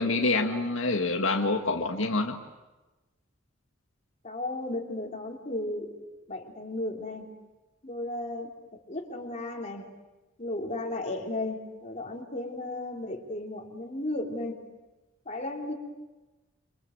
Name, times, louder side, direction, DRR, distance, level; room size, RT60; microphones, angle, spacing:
voice 1, 0.0-2.4, left 3 dB, 80° left, 3 dB, 1.9 m, -26 dB
voice 2, 4.2-5.9 6.3-7.3 7.8-9.9 10.4-14.6 15.3-15.7, left 2 dB, 35° left, 1 dB, 3.5 m, -34 dB
27.5 x 26.5 x 8.0 m, 1.1 s
head